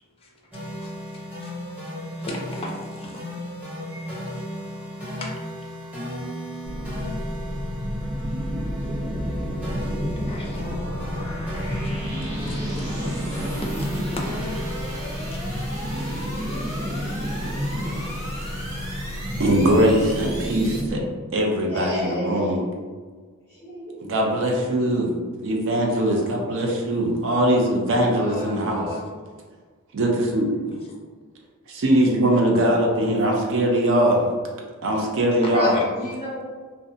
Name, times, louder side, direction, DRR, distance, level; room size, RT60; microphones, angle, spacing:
sound 1, 0.5-15.1, equal, 5° right, 0.7 m, -35 dB
voice 1, 2.2-3.2 3.9-4.1 5.2-5.3 9.8-9.9 10.3-10.6 13.6-14.0 35.7-35.8, left 2 dB, 25° left, -1 dB, 0.4 m, -36 dB
sound 2, 6.6-21.0, equal, 90° right, 1.3 m, -30 dB
sound 3, 7.3-20.8, equal, 45° right, 1.2 m, -36 dB
voice 2, 19.4-21.0 21.3-22.6 24.0-25.1 25.4-29.0 29.9-30.5 31.7-34.2 34.8-35.8, right 1 dB, 60° right, 0 dB, 0.5 m, -21 dB
voice 3, 21.7-22.7 23.6-23.9 28.1-29.0 35.5-36.4, left 1 dB, 25° right, -10 dB, 1.1 m, -31 dB
2.5 x 2.1 x 2.6 m, 1.5 s
head